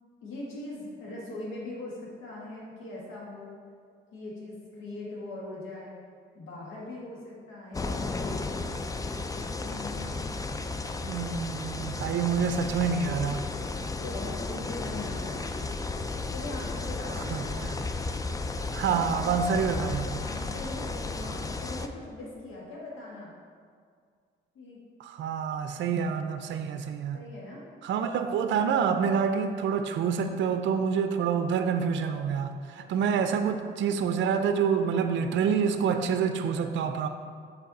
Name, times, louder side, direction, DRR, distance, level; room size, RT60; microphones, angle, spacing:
voice 1, 0.2-3.5 4.1-6.0 6.3-8.0 9.6-10.3 13.6-15.5 16.3-17.6 20.2-23.3 24.6-24.8 27.1-27.7 32.7-32.8, left 2 dB, 85° left, -4 dB, 1.7 m, -41 dB
sound 1, 7.7-21.9, left 3 dB, 15° left, 0.4 m, -34 dB
voice 2, 11.0-13.4 17.3-17.8 18.7-20.2 25.0-27.2 27.8-37.1, right 6 dB, 70° right, 7 dB, 0.5 m, -27 dB
7.6 x 4.6 x 4.1 m, 2.1 s
cardioid pair, 90°, 20 cm